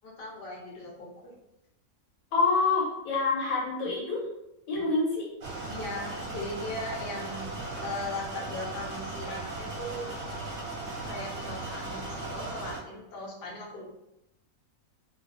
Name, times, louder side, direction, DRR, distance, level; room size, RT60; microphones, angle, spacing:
voice 1, 0.0-1.3 5.7-7.5 7.8-10.1 11.0-13.8, left 2 dB, 50° left, -3 dB, 0.8 m, -38 dB
voice 2, 2.3-4.3 4.7-5.3, left 3 dB, 90° left, -3 dB, 1.3 m, -26 dB
sound 1, 5.4-12.8, right 2 dB, 60° right, 0.8 m, -37 dB
2.4 x 2.3 x 2.4 m, 0.87 s
omnidirectional pair, 1.5 m